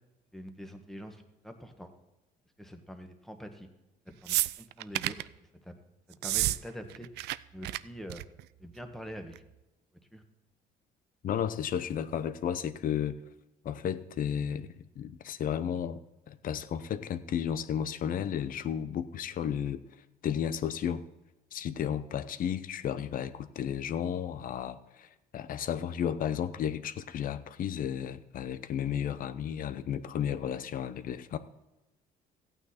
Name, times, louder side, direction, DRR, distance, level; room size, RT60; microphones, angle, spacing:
voice 1, 0.3-1.2 1.4-1.9 2.6-3.7 4.1-5.3 5.6-5.7 6.2-7.1 7.5-8.2 8.6-9.3 10.1-10.2, equal, ahead, 5 dB, 1.4 m, -44 dB
sound 1, 4.3-5.3 6.1-6.6 6.8-7.4 7.6-7.8 8.1-8.4 9.4-9.5, right 17 dB, 80° right, 0.4 m, -30 dB
voice 2, 11.2-13.2 13.6-16.0 16.3-19.8 20.2-21.0 21.5-31.4, left 9 dB, 55° left, 13 dB, 0.7 m, -33 dB
14.5 x 9.1 x 4.3 m, 1.0 s
cardioid pair, 110°, 17 cm